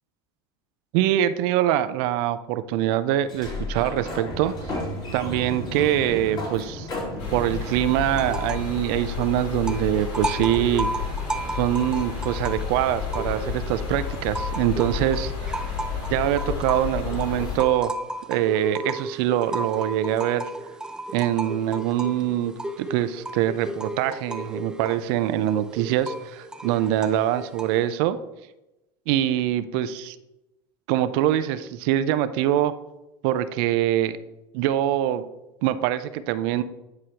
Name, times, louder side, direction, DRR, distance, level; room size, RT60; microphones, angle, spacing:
voice 1, 0.9-4.5 5.1-6.9 7.3-10.9 11.5-15.6 16.1-17.9 18.3-20.4 21.1-28.2 29.1-30.2 30.9-32.7 33.2-34.2 34.5-35.2 35.6-36.6, right 12 dB, 65° right, 12 dB, 0.5 m, -24 dB
Sliding door, 3.2-8.9, left 1 dB, 35° left, 2.7 m, -34 dB
sound 1, 7.2-17.6, left 6 dB, 60° left, 2.4 m, -31 dB
sound 2, 8.1-8.8 9.0-13.7 14.1-27.9, right 1 dB, 5° right, 0.5 m, -34 dB
9.5 x 4.9 x 2.9 m, 0.92 s
supercardioid pair, 105°, 13 cm